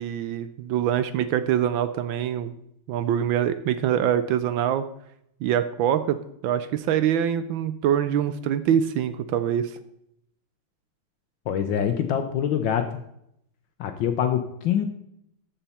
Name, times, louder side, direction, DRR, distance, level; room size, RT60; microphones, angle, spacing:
voice 1, 0.0-2.5 2.9-4.9 5.4-6.2 6.4-9.7, right 9 dB, 75° right, 12 dB, 1.2 m, -24 dB
voice 2, 11.5-13.0 13.8-14.9, left 9 dB, 70° left, 7 dB, 1.3 m, -25 dB
14.0 x 5.7 x 4.2 m, 0.76 s
omnidirectional pair, 2.4 m